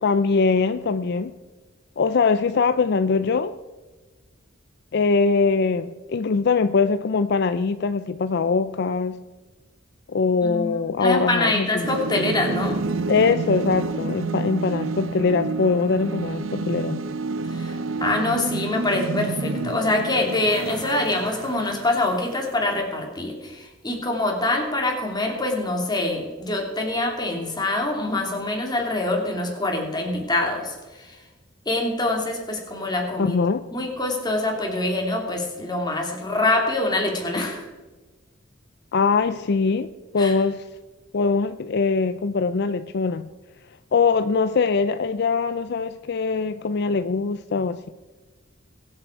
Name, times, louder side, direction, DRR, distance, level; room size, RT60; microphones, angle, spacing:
voice 1, 0.0-1.3 2.0-3.6 4.9-9.2 10.1-11.9 13.1-17.1 33.2-33.6 38.9-40.6 41.1-43.2 43.9-47.9, left 4 dB, 60° left, 0.5 m, -22 dB
voice 2, 10.4-12.8 17.5-31.2 31.7-33.4 33.7-37.6 40.2-40.3, left 2 dB, 20° left, 2.8 m, -25 dB
sound 1, 11.8-22.5, right 3 dB, 90° right, 0.7 m, -29 dB
22.5 x 7.7 x 4.5 m
head